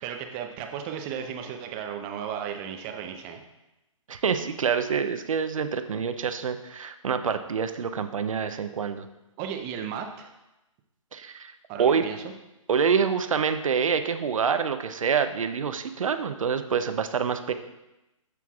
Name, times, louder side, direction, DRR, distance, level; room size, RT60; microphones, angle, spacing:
voice 1, 0.0-3.4 9.4-10.3 11.7-12.3, right 8 dB, 20° right, 5 dB, 0.6 m, -35 dB
voice 2, 4.1-9.1 11.1-11.5 11.8-12.1 12.7-17.5, right 6 dB, 75° right, 9 dB, 0.6 m, -26 dB
13.0 x 4.6 x 2.4 m, 0.97 s
hypercardioid pair, 145°, 17 cm